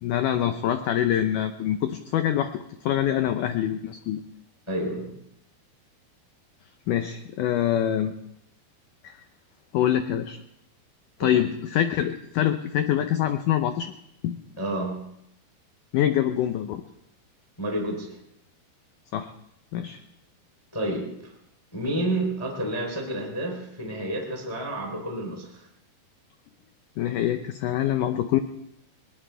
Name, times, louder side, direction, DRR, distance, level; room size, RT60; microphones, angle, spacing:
voice 1, 0.0-2.5 2.8-4.2 6.9-8.1 9.0-9.2 9.7-10.4 11.2-13.9 14.2-14.4 15.9-16.8 19.1-19.3 19.7-20.0 27.0-28.4, left 11 dB, 85° left, 8 dB, 1.8 m, -25 dB
voice 2, 4.7-5.1 11.2-11.3 14.6-15.0 17.6-18.1 20.7-21.3 21.7-25.6, right 1 dB, 5° left, 0 dB, 2.8 m, -30 dB
20.5 x 20.5 x 3.4 m, 0.76 s
omnidirectional pair, 4.7 m